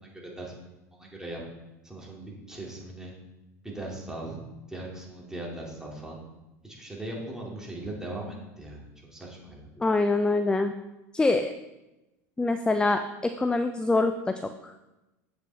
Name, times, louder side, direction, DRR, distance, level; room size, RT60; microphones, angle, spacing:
voice 1, 0.2-0.5 1.0-1.4 1.8-3.1 3.6-4.4 4.7-6.2 6.6-9.7, right 1 dB, 5° right, -3 dB, 2.2 m, -39 dB
voice 2, 9.8-10.7 11.1-11.5 12.4-14.5, left 3 dB, 10° left, 8 dB, 0.3 m, -25 dB
7.7 x 5.3 x 3.3 m, 1.0 s
hypercardioid pair, 90°, 9 cm